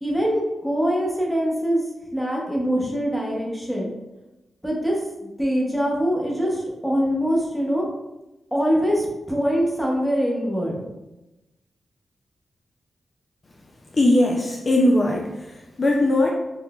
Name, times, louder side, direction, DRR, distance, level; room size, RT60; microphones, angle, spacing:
voice 1, 0.0-1.8 2.1-3.9 4.6-7.8 8.5-10.8, equal, ahead, -3 dB, 0.8 m, -23 dB
voice 2, 13.9-16.3, left 1 dB, 35° left, 0 dB, 0.3 m, -20 dB
3.7 x 3.2 x 2.3 m, 1.0 s
wide cardioid pair, 135°, 0 cm